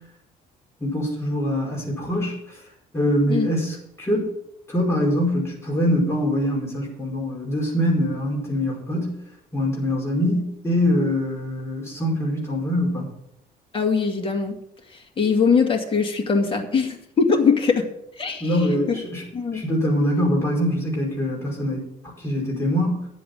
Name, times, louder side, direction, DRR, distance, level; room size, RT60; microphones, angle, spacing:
voice 1, 0.8-2.6 2.9-4.3 4.7-9.2 9.5-13.1 18.4-19.2 19.5-23.1, equal, 15° left, -3 dB, 5.3 m, -24 dB
voice 2, 13.7-14.6 14.9-17.9 18.2-18.6 19.3-19.6, left 5 dB, 30° left, 3 dB, 2.1 m, -21 dB
11.0 x 7.7 x 6.9 m, 0.75 s
cardioid pair, 110°, 17 cm